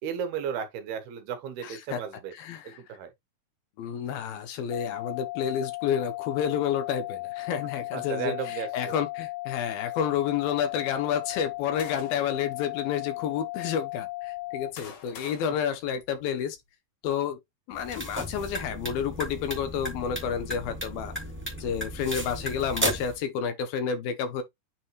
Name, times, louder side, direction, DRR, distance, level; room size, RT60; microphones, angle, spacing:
voice 1, 0.0-2.3 2.6-3.1 7.9-9.0, right 7 dB, 75° right, 3.1 m, -34 dB
voice 2, 1.6-2.0 2.4-2.8 3.8-16.6 17.0-17.4 17.7-21.1 21.6-24.4, left 8 dB, 70° left, 2.6 m, -30 dB
sound 1, 4.7-14.7, left 20 dB, 90° left, 2.0 m, -36 dB
sound 2, 11.3-12.5 13.2-13.3 14.2-16.6, left 7 dB, 55° left, 1.7 m, -47 dB
sound 3, 17.7-23.2, equal, 5° right, 1.0 m, -34 dB
9.1 x 3.4 x 3.1 m
omnidirectional pair, 4.7 m